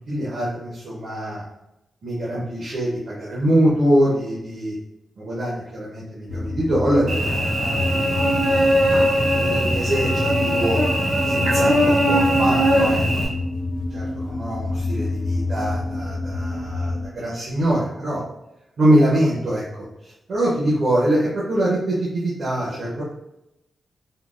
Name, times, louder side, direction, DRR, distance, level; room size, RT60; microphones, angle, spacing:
voice 1, 0.1-1.4 2.0-4.7 5.2-7.8 8.9-10.8 11.2-13.0 13.9-18.2 18.8-19.6 20.0-23.0, right 1 dB, 60° right, -7 dB, 0.7 m, -23 dB
sound 1, 6.3-17.1, left 2 dB, 70° left, 0.4 m, -28 dB
Cricket / Buzz, 7.1-13.3, equal, 90° right, 0.8 m, -20 dB
3.6 x 2.1 x 2.4 m, 0.88 s
wide cardioid pair, 160°, 0 cm